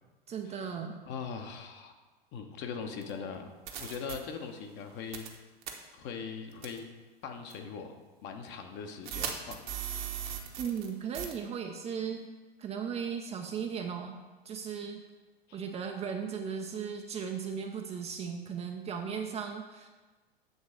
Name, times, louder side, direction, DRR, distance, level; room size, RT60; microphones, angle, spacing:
voice 1, 0.3-1.0 10.6-12.3 12.6-14.2 14.4-15.0 15.5-19.9, right 7 dB, 20° right, 3 dB, 0.6 m, -36 dB
voice 2, 1.0-1.9 2.3-3.5 3.8-5.3 5.9-6.9 7.2-9.8 15.5-15.6, left 6 dB, 35° left, 5 dB, 1.0 m, -41 dB
sound 1, 3.0-3.1 3.7-4.2 5.1-5.4 5.6-5.7 6.6-6.8 7.5-7.6 9.1-10.9 11.1-11.3, right 10 dB, 55° right, 1.2 m, -37 dB
8.0 x 4.0 x 6.4 m, 1.3 s
figure-of-eight pair, 90°, 30 cm